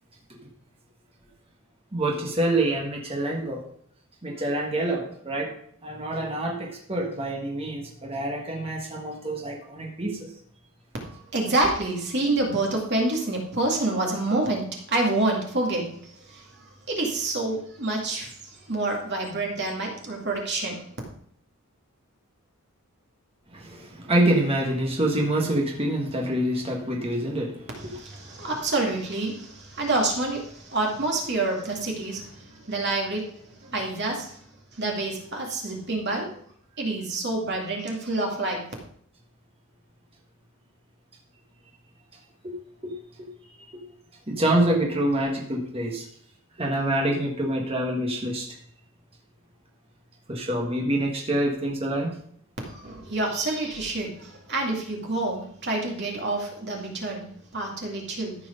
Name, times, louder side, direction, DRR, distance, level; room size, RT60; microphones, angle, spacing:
voice 1, 1.9-3.6 4.2-5.5 5.8-10.3 23.5-28.0 28.4-28.5 42.4-42.5 42.8-42.9 44.3-46.1 46.6-48.5 50.3-52.2, right 1 dB, 25° right, -1 dB, 1.6 m, -26 dB
voice 2, 11.3-16.4 16.9-18.3 18.7-20.8 27.9-32.3 32.7-33.3 33.6-34.3 34.8-36.3 36.8-38.6 52.6-58.4, right 2 dB, 50° right, 0 dB, 2.3 m, -27 dB
13.5 x 4.8 x 5.2 m, 0.63 s
head